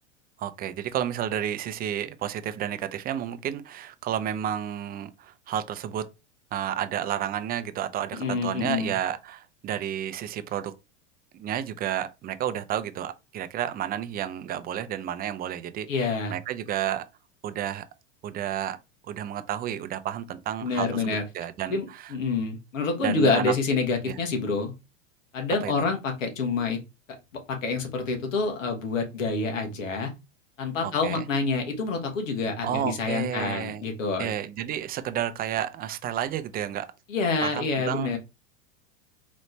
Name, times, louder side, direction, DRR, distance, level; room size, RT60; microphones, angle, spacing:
voice 1, 0.4-6.1 6.5-10.7 11.3-17.0 17.4-17.8 18.2-18.8 19.0-22.1 23.0-23.5 24.1-24.2 25.6-25.7 30.8-31.3 32.6-33.9 34.2-36.9 37.4-38.2, right 10 dB, 25° right, 0.5 m, -31 dB
voice 2, 8.1-8.9 15.9-16.3 20.6-21.2 21.7-24.7 25.3-26.8 27.5-30.1 30.6-34.3 37.1-38.2, left 4 dB, 85° left, 1.4 m, -27 dB
4.1 x 3.1 x 3.2 m
hypercardioid pair, 105°, 37 cm